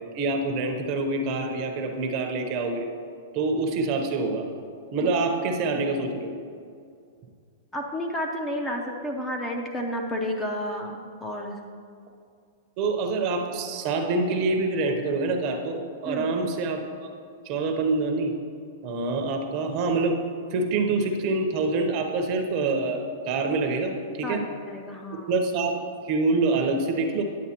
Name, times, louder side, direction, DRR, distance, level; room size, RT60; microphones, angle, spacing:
voice 1, 0.1-2.9 3.3-4.5 4.9-6.3 12.8-17.1 17.4-18.3 18.8-20.2 20.5-24.4 25.3-25.7 26.0-27.2, right 3 dB, 35° right, 4 dB, 0.8 m, -26 dB
voice 2, 7.7-11.6 16.0-16.4 24.2-24.4 24.6-25.3, equal, 10° left, 1 dB, 0.5 m, -31 dB
9.4 x 8.0 x 2.9 m, 2.3 s
supercardioid pair, 155°, 0 cm